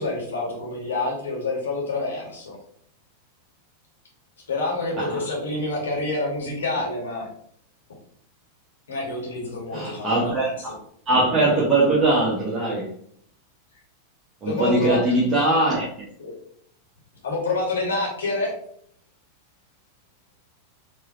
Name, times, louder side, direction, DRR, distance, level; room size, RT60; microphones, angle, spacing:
voice 1, 0.0-2.6 4.5-7.3 8.9-10.7 14.4-15.0 16.2-16.4 17.2-18.5, left 2 dB, 65° left, -2 dB, 1.4 m, -27 dB
voice 2, 9.7-10.7 11.1-12.9 14.4-15.9, right 2 dB, 25° right, -7 dB, 1.2 m, -21 dB
4.6 x 2.9 x 2.7 m, 0.64 s
figure-of-eight pair, 90°, 0 cm